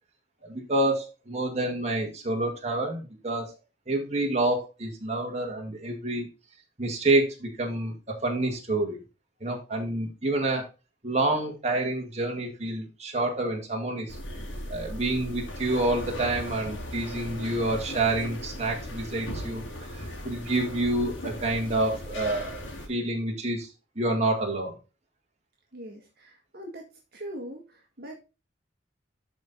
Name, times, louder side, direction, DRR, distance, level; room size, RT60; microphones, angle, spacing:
voice 1, 0.4-3.5 3.9-6.3 6.8-9.0 9.4-10.7 11.0-14.2 14.7-19.6 19.9-23.7 24.0-24.7, right 2 dB, 35° right, 0 dB, 2.0 m, -28 dB
sound 1, 14.1-22.9, equal, 85° left, 2.1 m, -37 dB
voice 2, 25.7-26.9 27.1-28.2, right 1 dB, 55° right, 1 dB, 1.6 m, -41 dB
11.0 x 4.3 x 3.8 m, 0.29 s
head